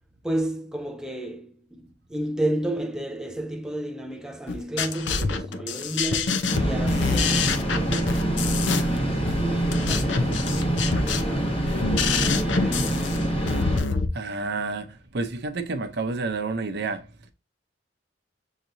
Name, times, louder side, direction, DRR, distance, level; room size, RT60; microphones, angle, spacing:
voice 1, 0.2-13.4, right 1 dB, 5° right, 0.4 m, -32 dB
sound 1, 4.5-14.1, left 4 dB, 75° left, 0.6 m, -26 dB
sound 2, 6.5-13.8, right 1 dB, 30° left, 1.1 m, -25 dB
voice 2, 14.1-17.3, right 3 dB, 60° right, 0.7 m, -30 dB
6.5 x 2.9 x 2.6 m
head